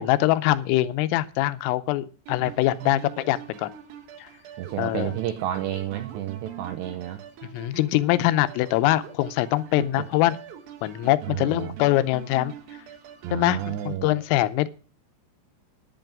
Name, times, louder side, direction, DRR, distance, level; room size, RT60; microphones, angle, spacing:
voice 1, 0.0-3.7 4.2-4.3 4.8-5.1 7.5-10.4 10.8-12.5 13.3-14.7, left 16 dB, 85° left, 12 dB, 3.3 m, -23 dB
sound 1, 2.3-14.0, right 9 dB, 65° right, 2.4 m, -44 dB
voice 2, 4.6-7.2 11.2-11.7 13.2-14.2, right 12 dB, 85° right, 9 dB, 2.5 m, -31 dB
10.5 x 9.2 x 6.0 m, 0.38 s
omnidirectional pair, 5.8 m